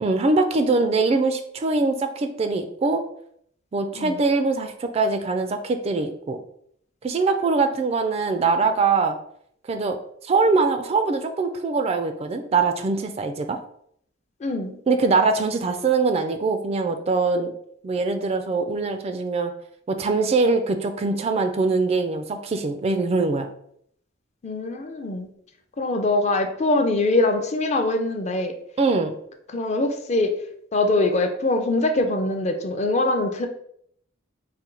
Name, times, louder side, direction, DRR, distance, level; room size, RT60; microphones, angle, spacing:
voice 1, 0.0-3.0 3.7-6.4 7.0-9.2 9.7-10.0 10.2-13.6 14.9-17.5 17.8-19.5 19.9-23.5 28.8-29.1, right 3 dB, 30° right, 7 dB, 0.3 m, -22 dB
voice 2, 14.4-14.8 24.4-25.3 25.8-28.5 29.5-30.3 30.7-33.5, left 2 dB, 35° left, 5 dB, 0.4 m, -23 dB
4.2 x 2.2 x 3.8 m, 0.67 s
head